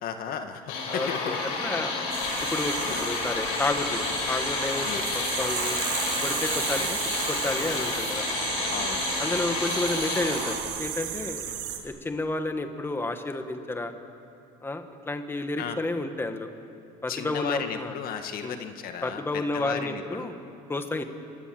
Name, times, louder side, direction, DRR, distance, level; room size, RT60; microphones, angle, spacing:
voice 1, 0.0-1.4 2.2-2.3 2.8-3.1 4.8-5.0 6.7-6.9 8.7-9.0 11.5-11.6 15.6-15.8 17.1-20.3, left 8 dB, 55° left, 7 dB, 1.9 m, -35 dB
sound 1, 0.7-10.6, left 3 dB, 90° left, 6.4 m, -30 dB
voice 2, 0.9-1.9 2.5-4.0 4.3-5.8 6.2-8.3 9.2-11.4 11.8-13.9 14.6-16.5 17.0-17.9 18.4-18.6 19.0-20.4 20.7-21.0, left 2 dB, 15° left, 6 dB, 1.9 m, -31 dB
sound 2, 2.1-11.8, right 10 dB, 85° right, 3.2 m, -34 dB
27.0 x 20.5 x 8.0 m, 2.6 s
cardioid pair, 115°, 18 cm